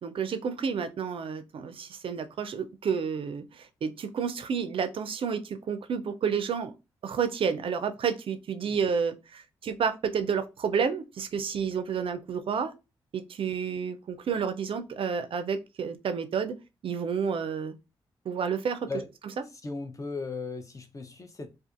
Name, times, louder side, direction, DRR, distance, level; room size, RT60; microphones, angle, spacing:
voice 1, 0.0-6.7 7.0-12.7 13.1-16.6 16.8-17.7 18.3-18.9, right 6 dB, 55° right, 0.4 m, -30 dB
voice 2, 19.6-21.5, left 4 dB, 30° left, 0.6 m, -37 dB
2.5 x 2.4 x 2.4 m
hypercardioid pair, 40°, 11 cm